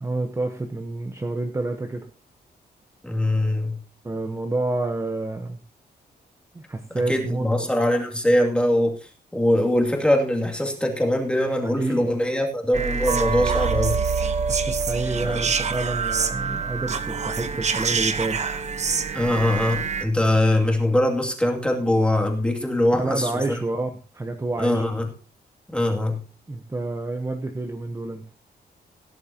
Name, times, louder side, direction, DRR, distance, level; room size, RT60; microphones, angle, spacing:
voice 1, 0.0-2.1 4.0-5.6 6.5-7.7 11.6-12.1 14.5-18.4 22.9-24.9 26.5-28.2, right 2 dB, 15° right, 4 dB, 1.0 m, -29 dB
voice 2, 3.0-3.8 7.1-8.9 9.3-14.0 15.2-15.4 19.1-23.3 24.6-25.1 25.7-26.2, left 1 dB, 5° left, 2 dB, 2.4 m, -22 dB
sound 1, 12.7-20.0, right 5 dB, 40° right, 1.0 m, -25 dB
17.5 x 10.5 x 2.9 m, 0.35 s
wide cardioid pair, 170°, 17 cm